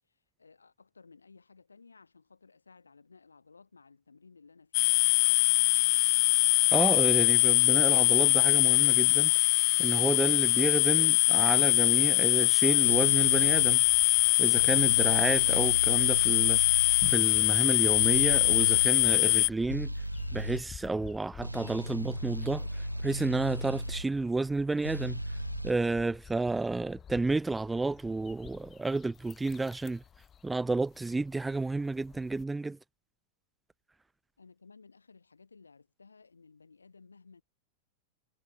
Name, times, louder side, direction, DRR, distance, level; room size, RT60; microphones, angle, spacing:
voice 1, 0.0-5.0 34.4-37.4, left 4 dB, 75° left, 3.1 m, -57 dB
sound 1, 4.7-19.5, left 40 dB or more, 45° left, 0.3 m, -23 dB
voice 2, 6.7-9.3 9.8-13.8 14.4-16.6 17.0-19.9 20.3-25.2 25.6-30.0 30.4-32.8, right 3 dB, 10° right, 0.5 m, -31 dB
sound 2, 12.8-13.8 14.6-17.2 18.0-18.9 19.7-20.6 21.4-24.0 24.8-25.7, equal, 90° right, 0.3 m, -35 dB
sound 3, 13.5-32.4, left 8 dB, 25° left, 3.9 m, -52 dB
figure-of-eight pair, 90°, 0 cm